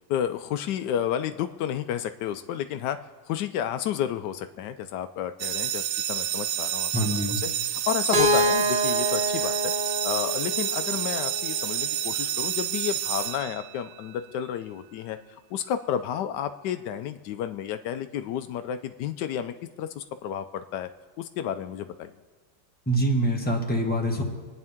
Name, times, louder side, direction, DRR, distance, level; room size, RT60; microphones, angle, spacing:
voice 1, 0.1-3.0 3.3-9.7 10.0-20.9 21.2-22.1, left 10 dB, 80° left, 10 dB, 1.2 m, -31 dB
sound 1, 5.4-14.1, right 11 dB, 80° right, 1.2 m, -29 dB
voice 2, 6.9-7.4 22.9-24.2, right 1 dB, 5° left, -1 dB, 1.4 m, -25 dB
Keyboard (musical), 8.1-12.0, right 1 dB, 40° right, 0.9 m, -27 dB
24.0 x 9.6 x 3.6 m, 1.4 s
omnidirectional pair, 1.8 m